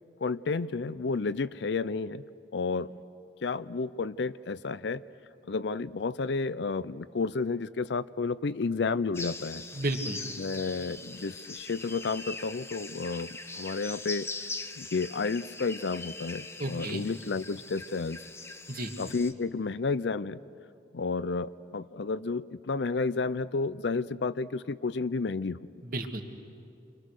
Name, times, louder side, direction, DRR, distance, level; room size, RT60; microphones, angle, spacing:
voice 1, 0.2-2.2 2.5-2.9 3.4-5.0 5.5-9.6 10.4-14.3 14.8-18.2 19.0-20.4 20.9-25.6, left 4 dB, 65° left, 16 dB, 0.5 m, -31 dB
sound 1, 9.1-19.3, left 3 dB, 15° left, 0.8 m, -41 dB
voice 2, 9.7-10.2 16.6-17.0 18.7-18.9 25.8-26.2, right 2 dB, 50° right, 4 dB, 1.8 m, -32 dB
29.5 x 25.0 x 6.5 m, 2.5 s
head